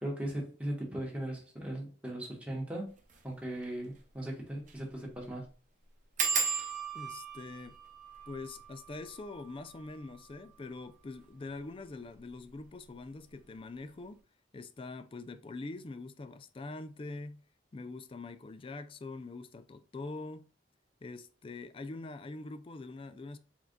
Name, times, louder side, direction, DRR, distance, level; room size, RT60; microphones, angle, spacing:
voice 1, 0.0-2.9 3.2-5.5, right 1 dB, 5° right, 1.3 m, -38 dB
sound 1, 3.0-3.2 3.6-3.7 3.9-4.0 4.6-4.9 5.1-5.2 6.2-11.4 12.1-12.6 13.0-13.3 13.6-13.7, right 5 dB, 45° right, 0.8 m, -37 dB
voice 2, 6.9-7.8 8.3-14.2 14.5-17.4 17.7-20.5 21.0-23.4, left 3 dB, 30° left, 0.4 m, -44 dB
4.6 x 3.8 x 2.3 m
head